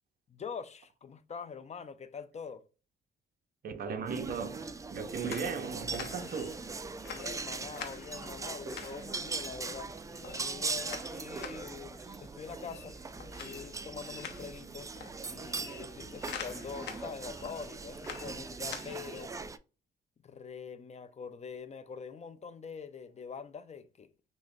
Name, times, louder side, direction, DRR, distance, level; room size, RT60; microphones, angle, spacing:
voice 1, 0.3-2.6 7.0-13.0 13.4-19.3 20.2-24.1, left 6 dB, 35° left, 0.6 m, -44 dB
voice 2, 3.6-6.6, right 5 dB, 50° right, 0.7 m, -37 dB
sound 1, 4.1-19.6, right 4 dB, 15° right, 0.3 m, -40 dB
sound 2, 5.0-19.2, left 7 dB, 65° left, 0.8 m, -48 dB
6.0 x 2.1 x 2.6 m
cardioid pair, 90°, 20 cm